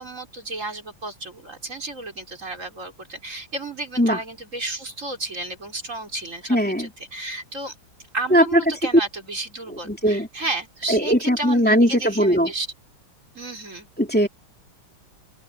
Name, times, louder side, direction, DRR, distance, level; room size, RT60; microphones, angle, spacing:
voice 1, 0.0-7.7 8.1-12.7 13.3-13.9, right 2 dB, 35° right, 4.4 m, -32 dB
voice 2, 6.5-6.9 8.3-8.6 9.9-10.3 10.9-12.5 14.0-14.3, equal, 5° left, 2.7 m, -19 dB
open air
omnidirectional pair, 2.2 m